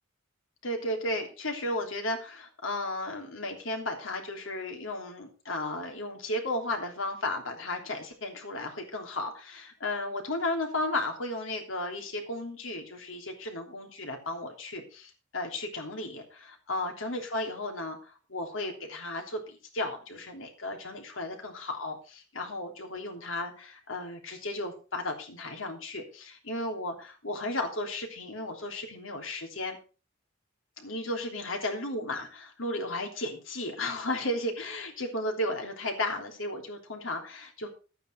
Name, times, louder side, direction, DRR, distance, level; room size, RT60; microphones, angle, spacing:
voice 1, 0.6-29.8 30.8-37.7, left 1 dB, 80° left, 3 dB, 3.3 m, -34 dB
12.0 x 9.3 x 4.7 m, 0.34 s
head